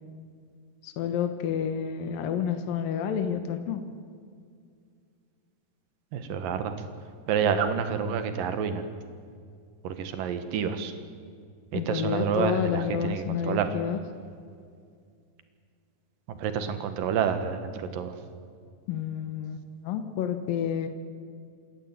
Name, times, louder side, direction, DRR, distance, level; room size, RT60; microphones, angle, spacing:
voice 1, 0.8-3.8 11.7-14.0 18.9-20.9, left 8 dB, 85° left, 8 dB, 3.0 m, -29 dB
voice 2, 6.1-6.7 7.3-8.8 9.8-10.9 11.7-13.7 16.3-18.1, right 7 dB, 80° right, 9 dB, 3.2 m, -28 dB
27.5 x 13.5 x 9.6 m, 2.2 s
omnidirectional pair, 3.9 m